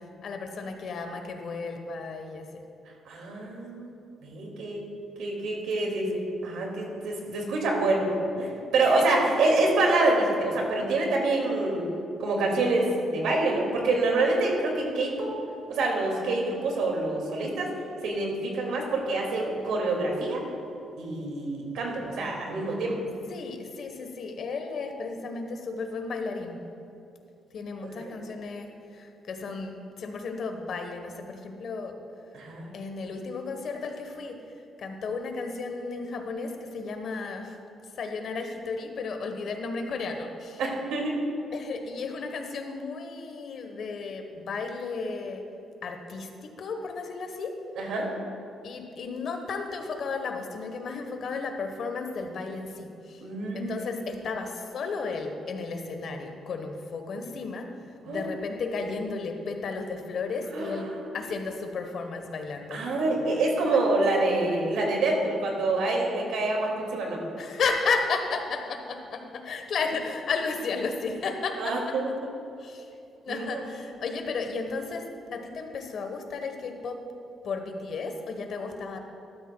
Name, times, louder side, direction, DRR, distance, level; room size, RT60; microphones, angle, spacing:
voice 1, 0.2-2.6 5.7-6.2 8.8-9.4 23.3-26.6 27.5-31.9 32.7-34.4 34.8-37.6 38.0-40.6 41.5-45.4 45.8-47.5 48.6-53.2 53.5-57.7 58.0-60.9 61.1-62.8 67.4-71.9 72.6-72.9 73.2-75.0 75.3-77.0 77.4-79.0, left 4 dB, 55° left, 5 dB, 1.0 m, -33 dB
voice 2, 3.1-3.9 4.2-4.8 5.2-6.2 6.4-11.9 12.2-15.3 15.7-17.7 18.0-20.4 21.0-23.0 28.0-28.1 32.3-32.7 40.6-41.2 47.8-48.1 53.2-53.9 58.1-58.3 60.5-61.0 62.7-67.2 71.6-72.1 73.3-73.6, right 2 dB, 85° right, 0 dB, 2.1 m, -26 dB
13.0 x 12.5 x 2.2 m, 2.7 s
cardioid pair, 125°, 0 cm